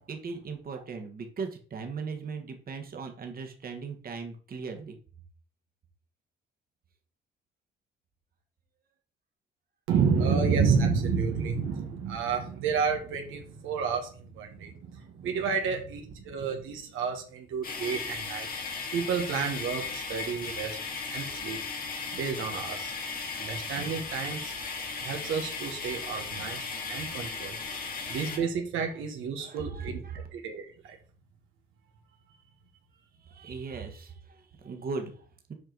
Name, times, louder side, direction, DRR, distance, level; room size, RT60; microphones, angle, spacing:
voice 1, 0.1-5.0 27.1-28.5 28.8-28.9 29.4-30.3 33.2-35.5, right 4 dB, 50° right, 4 dB, 1.5 m, -39 dB
voice 2, 9.9-18.5 18.9-20.8 21.1-21.6 22.1-27.6 28.0-31.0, right 5 dB, 85° right, 3 dB, 1.4 m, -30 dB
sound 1, 17.6-28.4, left 5 dB, 45° left, 2.1 m, -36 dB
7.7 x 4.7 x 4.0 m, 0.41 s
cardioid pair, 90°, 20 cm